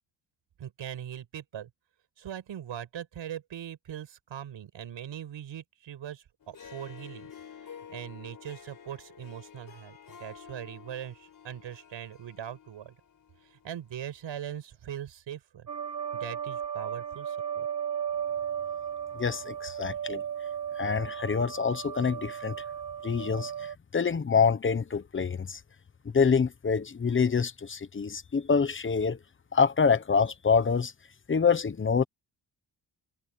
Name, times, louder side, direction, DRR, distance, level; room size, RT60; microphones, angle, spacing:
voice 1, 0.6-1.7 2.2-7.3 7.6-13.0 13.4-15.7 16.1-17.7, right 10 dB, 75° right, 6.6 m, -41 dB
Harp, 6.4-13.8, left 7 dB, 45° left, 4.2 m, -50 dB
sound 1, 15.7-23.7, right 9 dB, 40° right, 3.1 m, -35 dB
voice 2, 19.1-20.2 20.8-22.6 23.0-25.6 26.0-29.2 29.5-30.9 31.3-32.0, left 5 dB, 25° left, 1.0 m, -26 dB
wide cardioid pair, 145°, 46 cm